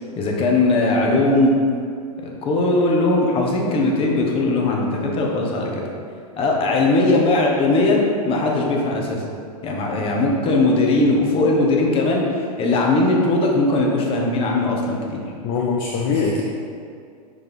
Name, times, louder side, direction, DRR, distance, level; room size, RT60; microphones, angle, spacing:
voice 1, 0.2-1.5 2.2-5.8 6.4-9.2 9.6-15.2, left 2 dB, 30° left, -1 dB, 1.1 m, -19 dB
voice 2, 15.4-16.4, left 5 dB, 45° left, -1 dB, 0.6 m, -22 dB
6.2 x 4.4 x 3.5 m, 2.3 s
hypercardioid pair, 120°, 20 cm